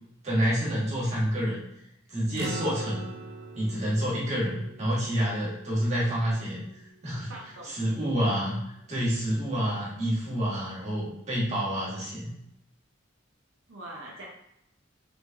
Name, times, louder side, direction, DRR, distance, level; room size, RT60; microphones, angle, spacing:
voice 1, 0.2-1.6 2.1-3.1 3.5-6.6 7.0-7.3 7.6-8.6 8.9-12.3, equal, 35° right, -6 dB, 1.5 m, -28 dB
sound 1, 2.4-7.0, right 2 dB, 55° right, 0.6 m, -41 dB
voice 2, 7.3-8.1 13.7-14.3, right 1 dB, 85° right, -2 dB, 0.8 m, -43 dB
4.0 x 3.2 x 3.5 m, 0.79 s
head